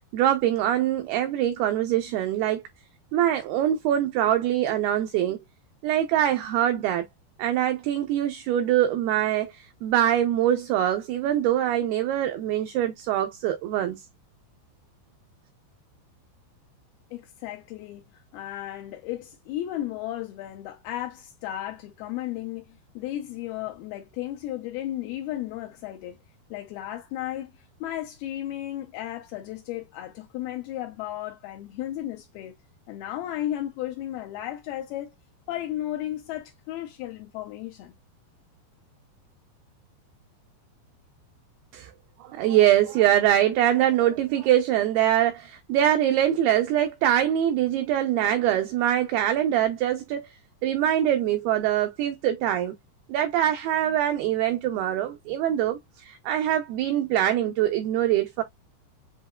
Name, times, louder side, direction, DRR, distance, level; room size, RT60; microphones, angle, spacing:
voice 1, 0.1-2.6 3.1-5.4 5.8-7.1 7.4-14.0 41.7-41.9 42.2-50.3 50.6-52.7 53.1-58.4, right 11 dB, 85° right, 2.2 m, -23 dB
voice 2, 17.1-18.0 18.3-26.2 26.5-32.6 32.9-35.1 35.5-37.9, left 13 dB, 85° left, 2.1 m, -34 dB
7.9 x 2.8 x 2.3 m
omnidirectional pair, 5.2 m